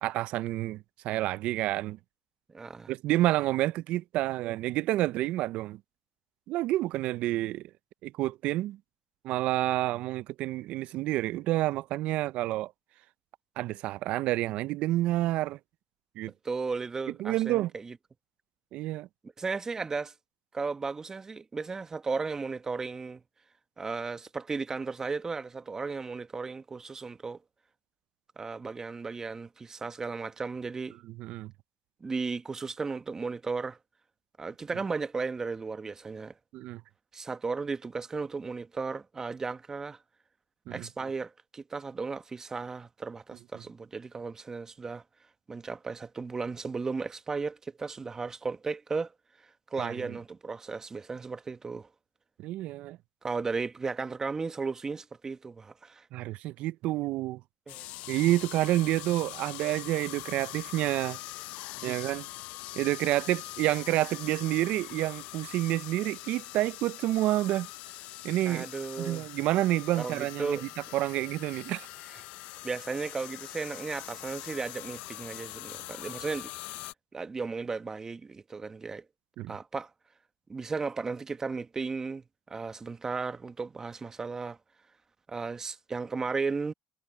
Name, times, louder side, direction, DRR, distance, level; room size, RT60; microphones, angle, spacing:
voice 1, 0.0-2.0 2.9-5.8 6.5-7.7 8.0-8.8 9.2-12.7 13.6-15.6 16.2-16.3 17.1-17.7 18.7-19.1 31.0-31.5 36.5-36.8 40.7-40.9 49.8-50.2 52.4-53.0 56.1-57.4 58.1-61.2 61.8-62.3 62.8-67.7 68.2-68.7 69.0-71.9 79.4-79.6, right 16 dB, 70° right, 0.5 m, -29 dB
voice 2, 2.5-2.9 16.4-17.9 19.4-20.1 20.5-23.2 23.8-27.4 28.4-31.0 32.0-33.8 34.4-36.3 37.1-40.0 40.7-45.0 45.5-49.1 49.7-51.9 53.2-56.0 57.7-57.9 61.8-62.1 68.5-69.3 70.0-70.6 72.6-76.5 77.1-79.0 79.5-79.9 80.5-84.6 85.3-86.7, right 4 dB, 25° right, 1.3 m, -35 dB
sound 1, 57.7-76.9, left 19 dB, 75° left, 0.6 m, -43 dB
supercardioid pair, 85°, 2 cm